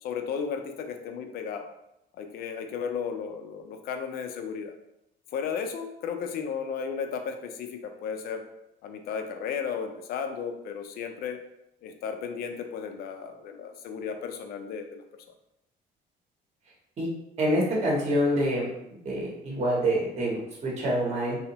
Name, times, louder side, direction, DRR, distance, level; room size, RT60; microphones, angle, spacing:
voice 1, 0.0-1.7 2.2-4.7 5.3-8.4 8.8-11.4 11.8-15.0, left 6 dB, 65° left, 5 dB, 0.4 m, -34 dB
voice 2, 17.4-18.7 19.0-21.4, equal, 40° right, -3 dB, 0.8 m, -26 dB
2.7 x 2.0 x 2.8 m, 0.85 s
cardioid pair, 110°, 17 cm